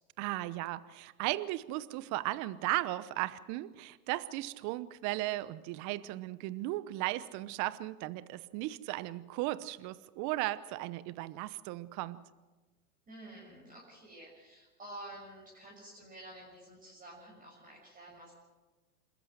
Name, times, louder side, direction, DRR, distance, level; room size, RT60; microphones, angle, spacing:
voice 1, 0.2-12.2, right 17 dB, 40° right, 16 dB, 0.9 m, -36 dB
voice 2, 13.1-18.3, right 1 dB, 20° right, -3 dB, 6.5 m, -50 dB
27.5 x 14.0 x 7.8 m, 1.2 s
hypercardioid pair, 110°, 44 cm